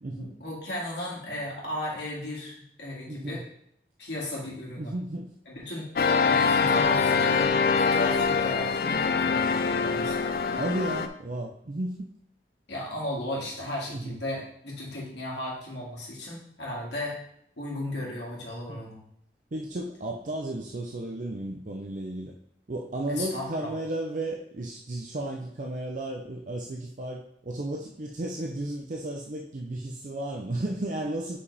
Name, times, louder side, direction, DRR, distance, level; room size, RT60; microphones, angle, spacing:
voice 1, 0.1-3.4 4.0-4.9 5.5-5.9 6.2-10.2 12.7-17.2 17.6-19.0 23.1-23.7, left 1 dB, 80° left, -4 dB, 2.0 m, -35 dB
voice 2, 3.1-3.4 4.8-5.3 6.6-6.8 10.5-12.1 13.9-14.2 18.7-18.8 19.5-22.3 22.7-31.4, right 1 dB, 45° right, 0 dB, 0.6 m, -34 dB
sound 1, 6.0-11.1, left 5 dB, 55° left, 0.4 m, -24 dB
5.6 x 5.1 x 4.1 m, 0.70 s
head